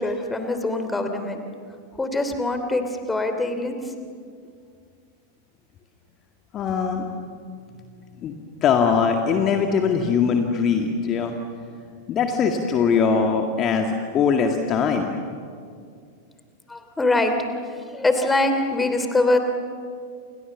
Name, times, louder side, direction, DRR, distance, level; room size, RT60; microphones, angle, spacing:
voice 1, 0.0-1.4 2.0-2.8 3.1-3.8 16.7-17.4 17.7-19.4, left 2 dB, 10° left, 7 dB, 3.0 m, -23 dB
voice 2, 6.5-7.0 8.2-8.4 8.6-11.4 12.1-15.2, left 6 dB, 30° left, 4 dB, 1.9 m, -21 dB
29.5 x 28.0 x 7.2 m, 2.2 s
figure-of-eight pair, 90°, 0 cm